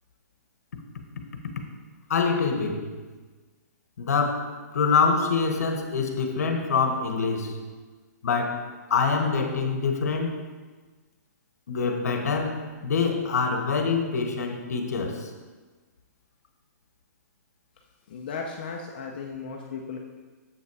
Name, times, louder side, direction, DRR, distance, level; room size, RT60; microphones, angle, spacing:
voice 1, 2.1-2.9 4.0-7.6 8.2-10.5 11.7-15.3, left 5 dB, 60° left, 5 dB, 1.1 m, -25 dB
voice 2, 18.1-20.0, left 5 dB, 30° left, 1 dB, 0.6 m, -35 dB
7.8 x 5.7 x 4.7 m, 1.3 s
hypercardioid pair, 180°, 10 cm